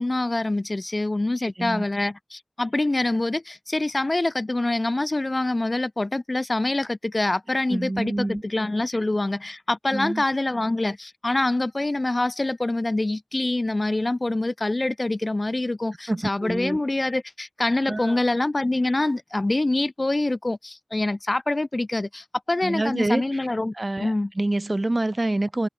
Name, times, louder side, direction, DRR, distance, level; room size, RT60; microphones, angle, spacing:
voice 1, 0.0-23.7 24.0-24.3, left 2 dB, 50° left, 0.6 m, -25 dB
voice 2, 1.4-1.8 7.7-8.4 9.9-10.2 16.1-16.8 17.9-18.2 22.6-23.2 23.8-25.7, right 2 dB, 45° right, 0.6 m, -26 dB
wide cardioid pair, 55°, 0 cm